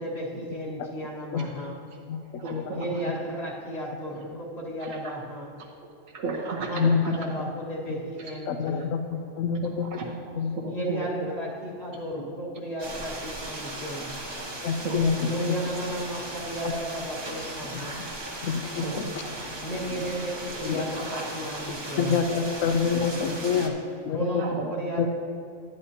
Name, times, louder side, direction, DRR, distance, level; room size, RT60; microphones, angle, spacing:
voice 1, 0.0-1.9 2.7-5.6 6.6-8.9 10.7-14.1 15.3-18.0 19.6-22.2 24.1-25.1, right 1 dB, 50° left, -5 dB, 2.1 m, -34 dB
voice 2, 1.3-1.7 2.1-2.2 2.5-2.6 6.7-7.2 8.5-9.0 9.4-9.9 10.3-10.6 14.6-15.3 16.6-16.7 18.4-19.0 20.6-20.9 22.0-23.7 24.0-24.4 25.0-25.1, left 6 dB, 80° left, 7 dB, 1.0 m, -26 dB
voice 3, 2.3-3.0 4.1-4.2 4.8-4.9 6.1-7.2 9.8-10.0 10.5-11.3 12.1-12.3 13.7-14.1 14.3-14.5 14.8-15.3 17.8-18.0 18.7-20.1 21.0-21.2 21.8-21.9 22.4-22.5 23.2-23.3 24.4-24.7, right 4 dB, 90° right, -2 dB, 1.4 m, -35 dB
sound 1, 12.8-23.7, right 1 dB, 25° right, 0.8 m, -37 dB
11.5 x 9.7 x 2.9 m, 2.6 s
omnidirectional pair, 1.4 m